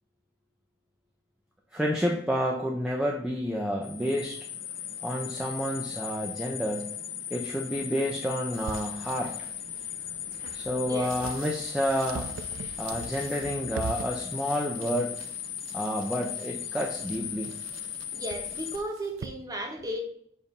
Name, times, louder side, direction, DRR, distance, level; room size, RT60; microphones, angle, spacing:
voice 1, 1.7-4.4 5.0-6.9 7.3-9.5 10.5-12.3 12.8-15.2 15.7-17.6, equal, 5° right, -1 dB, 0.5 m, -30 dB
sound 1, 3.8-18.8, left 9 dB, 75° left, 0.8 m, -38 dB
sound 2, 8.5-19.3, right 5 dB, 90° right, 0.4 m, -43 dB
voice 2, 10.2-10.6 10.8-11.1 15.7-15.8 18.1-20.0, right 1 dB, 20° right, 3 dB, 0.9 m, -35 dB
7.0 x 2.7 x 5.4 m, 0.67 s
head